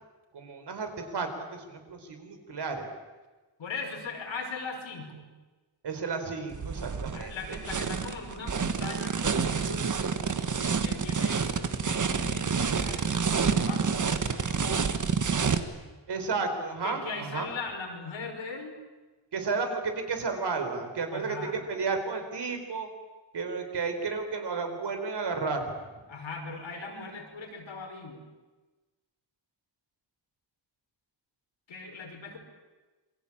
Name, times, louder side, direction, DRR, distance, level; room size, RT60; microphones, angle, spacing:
voice 1, 0.3-2.9 5.8-7.6 16.1-17.5 19.3-21.4 21.7-22.9 23.3-25.7, right 4 dB, 60° right, 6 dB, 4.5 m, -32 dB
voice 2, 3.6-5.3 7.1-9.9 10.6-14.9 16.8-18.8 21.1-21.6 26.1-28.2 31.7-32.4, left 4 dB, 85° left, 2 dB, 5.7 m, -39 dB
sound 1, 6.5-15.6, right 5 dB, 40° right, 1.6 m, -28 dB
27.5 x 23.0 x 8.8 m, 1.2 s
wide cardioid pair, 165°, 45 cm